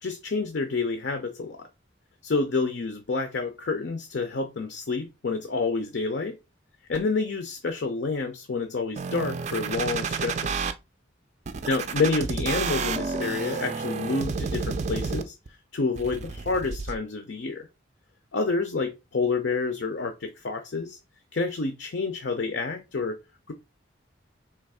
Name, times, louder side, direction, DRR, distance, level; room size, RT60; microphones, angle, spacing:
voice 1, 0.0-1.7 2.2-6.4 6.9-10.7 11.7-15.3 15.7-17.7 18.3-21.0 21.3-23.2 23.5-23.6, left 4 dB, 60° left, 0.6 m, -28 dB
sound 1, 9.0-10.7 11.5-15.5 16.0-16.9, right 5 dB, 35° right, 0.4 m, -30 dB
3.4 x 3.0 x 4.7 m
head